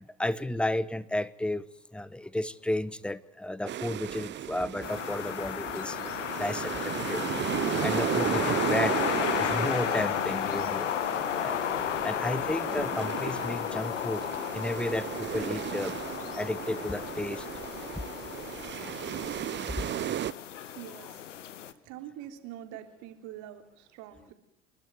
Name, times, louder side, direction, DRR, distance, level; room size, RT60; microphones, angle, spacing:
voice 1, 0.0-1.6 1.9-6.0 6.4-7.2 7.8-10.9 11.3-14.2 14.5-16.0 16.4-17.5 18.0-18.1 19.8-19.9, left 1 dB, 5° left, 20 dB, 1.0 m, -33 dB
sound 1, 3.7-20.3, right 11 dB, 30° right, 0.8 m, -35 dB
sound 2, 4.8-21.7, left 10 dB, 80° left, 1.4 m, -33 dB
voice 2, 20.7-21.2 21.8-24.3, right 12 dB, 55° right, 8 dB, 3.4 m, -44 dB
29.5 x 12.5 x 9.6 m, 0.83 s
hypercardioid pair, 80°, 36 cm